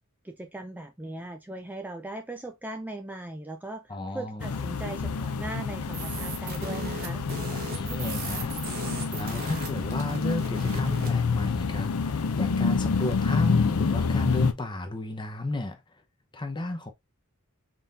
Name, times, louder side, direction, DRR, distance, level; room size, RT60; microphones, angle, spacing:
voice 1, 0.2-7.2, right 2 dB, 10° right, 0.4 m, -39 dB
voice 2, 3.9-4.6 7.5-15.8 16.3-16.9, left 2 dB, 20° left, 0.7 m, -33 dB
sound 1, 4.4-14.5, left 5 dB, 70° left, 0.5 m, -28 dB
sound 2, 5.9-11.2, right 3 dB, 45° right, 1.3 m, -38 dB
4.0 x 3.7 x 2.4 m
head